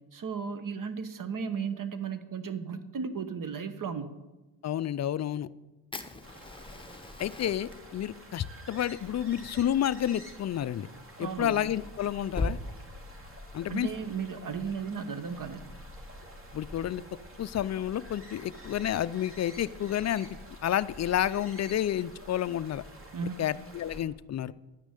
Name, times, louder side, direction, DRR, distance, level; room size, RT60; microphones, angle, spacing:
voice 1, 0.1-4.1 11.2-11.6 13.7-15.7 23.1-23.4, right 6 dB, 45° right, 11 dB, 1.2 m, -35 dB
voice 2, 4.6-5.5 7.2-10.9 11.2-12.6 13.5-13.9 16.5-17.0 17.4-20.3 20.6-22.8 23.4-24.5, left 11 dB, 35° left, 16 dB, 0.5 m, -30 dB
Fire, 5.9-12.6, left 2 dB, 10° left, 1.1 m, -41 dB
sound 1, 6.2-24.0, equal, 25° right, 2.6 m, -48 dB
10.5 x 6.1 x 8.3 m, 1.1 s
supercardioid pair, 70°, 46 cm